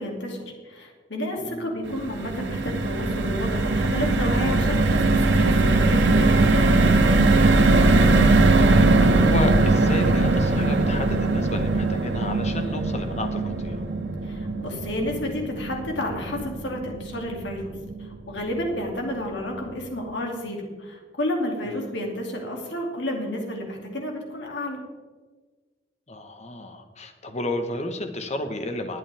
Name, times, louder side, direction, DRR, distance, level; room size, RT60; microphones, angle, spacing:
voice 1, 0.0-6.8 14.2-24.8, left 1 dB, 65° left, 1 dB, 2.7 m, -31 dB
voice 2, 1.4-1.7 8.1-13.8 21.6-21.9 26.1-29.0, left 1 dB, 35° left, 6 dB, 1.3 m, -32 dB
sound 1, 1.8-18.2 18.6-18.7 18.9-19.2, right 2 dB, 65° right, 1.0 m, -21 dB
20.5 x 8.6 x 3.5 m, 1.4 s
head